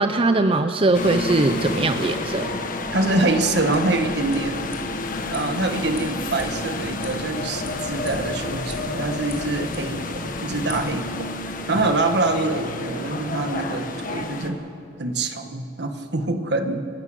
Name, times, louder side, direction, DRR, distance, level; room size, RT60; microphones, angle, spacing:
voice 1, 0.0-2.5, right 2 dB, 30° right, 8 dB, 0.6 m, -20 dB
sound 1, 0.9-14.5, left 2 dB, 50° left, 1.5 m, -30 dB
voice 2, 2.9-4.7 5.3-11.3 11.7-14.6 15.0-16.9, right 2 dB, 65° right, 7 dB, 1.5 m, -25 dB
sound 2, 3.3-10.8, left 1 dB, 15° left, 2.6 m, -42 dB
28.5 x 12.5 x 7.8 m, 2.7 s
head